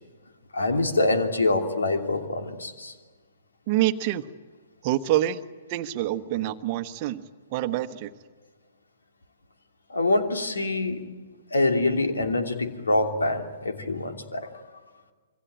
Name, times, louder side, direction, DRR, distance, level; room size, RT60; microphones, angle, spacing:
voice 1, 0.5-2.9 9.9-11.1 11.5-14.5, left 2 dB, 70° left, 5 dB, 3.0 m, -25 dB
voice 2, 3.7-4.2 4.8-5.4 5.7-7.2 7.5-8.1, right 14 dB, 35° right, 10 dB, 1.2 m, -26 dB
27.0 x 24.0 x 9.0 m, 1.4 s
figure-of-eight pair, 115°, 0 cm